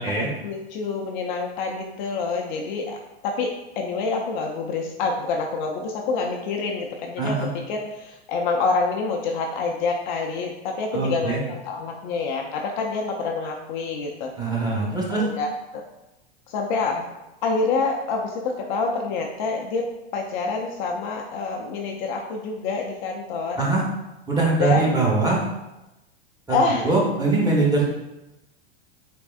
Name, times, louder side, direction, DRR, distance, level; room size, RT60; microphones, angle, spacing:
voice 1, 0.4-3.5 3.8-14.3 15.1-15.8 16.5-17.1 17.4-19.8 20.1-23.6 24.6-24.8 26.5-26.9, left 4 dB, 45° left, 1 dB, 0.5 m, -27 dB
voice 2, 10.9-11.4 14.4-15.2 23.6-23.8 24.3-25.4 26.5-26.6 26.8-27.8, right 3 dB, 10° right, -4 dB, 1.0 m, -22 dB
3.5 x 3.2 x 2.3 m, 0.96 s
hypercardioid pair, 105°, 32 cm